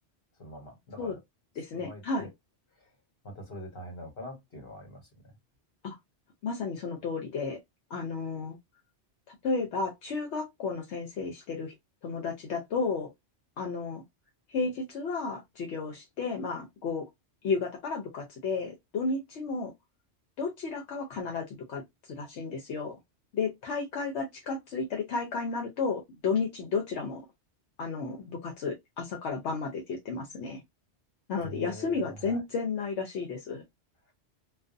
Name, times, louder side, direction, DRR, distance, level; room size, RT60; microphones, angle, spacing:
voice 1, 0.4-1.2 1.7-2.3 3.2-5.3 31.4-32.4, left 1 dB, 55° left, 1.3 m, -44 dB
voice 2, 1.6-2.3 5.8-6.0 6.4-7.6 7.9-8.6 9.3-11.7 12.0-13.1 13.6-14.0 14.5-17.0 17.4-19.7 20.4-23.0 23.3-27.2 27.8-30.6 31.3-33.6, left 4 dB, 75° left, 0.9 m, -33 dB
2.4 x 2.2 x 2.5 m
omnidirectional pair, 1.2 m